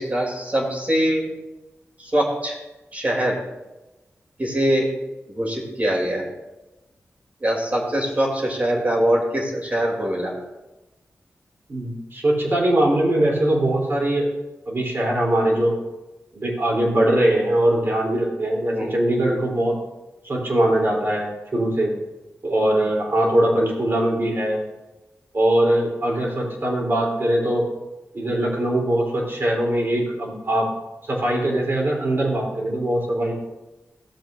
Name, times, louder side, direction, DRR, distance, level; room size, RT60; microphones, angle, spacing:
voice 1, 0.0-1.3 2.0-2.6 2.9-3.4 4.4-4.9 5.3-6.3 7.4-10.3 18.7-19.0 23.4-23.7, right 1 dB, 30° right, -1 dB, 3.0 m, -23 dB
voice 2, 11.7-14.3 14.7-15.8 16.3-19.8 20.2-21.9 22.4-24.6 25.3-27.7 28.1-30.7 31.0-33.3, right 1 dB, 50° right, -2 dB, 3.5 m, -21 dB
16.5 x 7.8 x 2.6 m, 1.0 s
wide cardioid pair, 105°, 5 cm